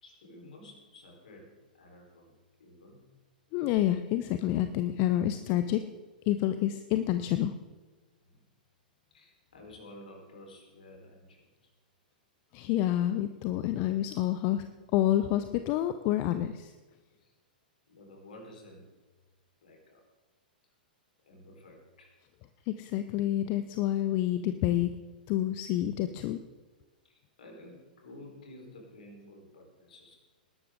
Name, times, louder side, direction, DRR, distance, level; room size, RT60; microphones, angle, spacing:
voice 1, 0.0-3.1 8.2-8.5 9.1-11.7 17.2-17.3 17.9-18.9 19.6-20.0 21.2-22.1 27.0-30.2, left 1 dB, 65° left, 1 dB, 4.3 m, -52 dB
voice 2, 3.5-5.8 6.3-7.5 12.5-14.6 14.9-16.7 22.7-24.9 25.3-26.4, left 13 dB, 40° left, 10 dB, 0.6 m, -28 dB
19.5 x 11.5 x 3.8 m, 1.3 s
figure-of-eight pair, 100°, 5 cm